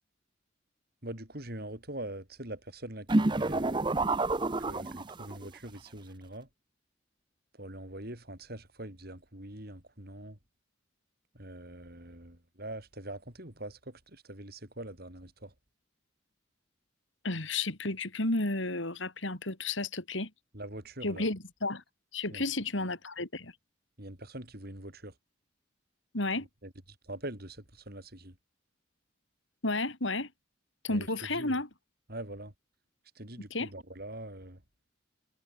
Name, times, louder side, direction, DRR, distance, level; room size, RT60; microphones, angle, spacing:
voice 1, 1.0-4.1 4.7-6.5 7.6-10.4 11.3-15.5 20.5-21.3 22.3-22.4 24.0-25.1 26.6-26.7 27.1-28.3 30.9-31.1 31.3-31.6 32.1-32.5 33.2-34.6, right 1 dB, 50° right, 6.8 m, -43 dB
sound 1, 3.1-5.5, right 2 dB, 25° right, 0.7 m, -28 dB
voice 2, 17.2-20.3 21.0-21.8 22.1-23.5 26.1-26.5 29.6-30.3 30.8-31.7 33.5-33.7, left 2 dB, 75° left, 4.2 m, -32 dB
head